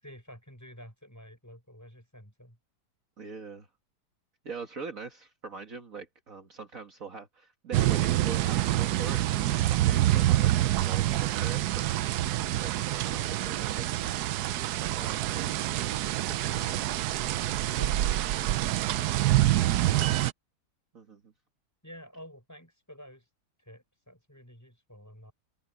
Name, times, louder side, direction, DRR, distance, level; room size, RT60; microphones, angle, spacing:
voice 1, 0.0-2.6 12.3-12.7 17.7-18.8 19.6-20.2 21.8-23.3 23.6-25.3, equal, 10° left, 7.0 m, -50 dB
voice 2, 3.2-3.7 4.4-12.3 12.6-14.0 14.5-15.5 20.9-21.3, right 4 dB, 50° right, 2.1 m, -43 dB
sound 1, 7.7-20.3, right 15 dB, 75° right, 1.1 m, -26 dB
omnidirectional pair, 1.8 m